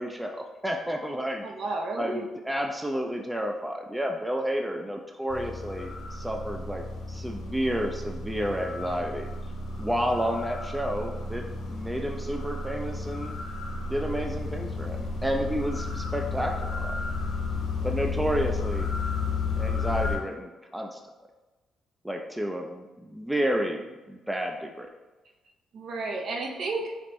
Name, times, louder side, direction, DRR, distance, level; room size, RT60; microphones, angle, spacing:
voice 1, 0.0-1.5 2.0-9.3 9.8-13.4 13.9-16.9 17.8-18.9 19.6-21.0 22.0-24.9, equal, 5° right, 3 dB, 0.4 m, -31 dB
voice 2, 1.4-2.3 25.7-26.9, right 3 dB, 65° right, 1 dB, 0.7 m, -32 dB
sound 1, 5.3-20.2, left 3 dB, 85° left, 1.2 m, -32 dB
5.1 x 2.9 x 3.0 m, 1.2 s
cardioid pair, 90°, 0 cm